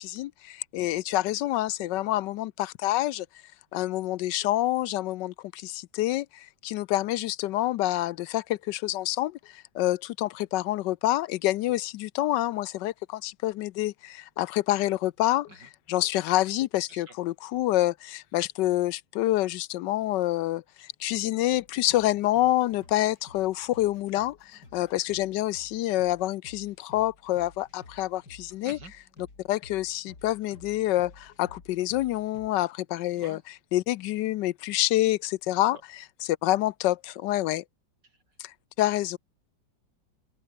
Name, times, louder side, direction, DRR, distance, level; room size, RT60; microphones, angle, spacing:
voice 1, 0.0-3.3 3.7-28.8 29.5-37.6 38.4-39.2, left 15 dB, 75° left, 1.2 m, -27 dB
voice 2, 15.5-15.7 16.9-17.1 28.6-28.9 33.2-33.4 35.7-35.8, right 3 dB, 70° right, 6.4 m, -46 dB
sound 1, 21.5-32.5, left 3 dB, 60° left, 5.2 m, -53 dB
open air
omnidirectional pair, 2.0 m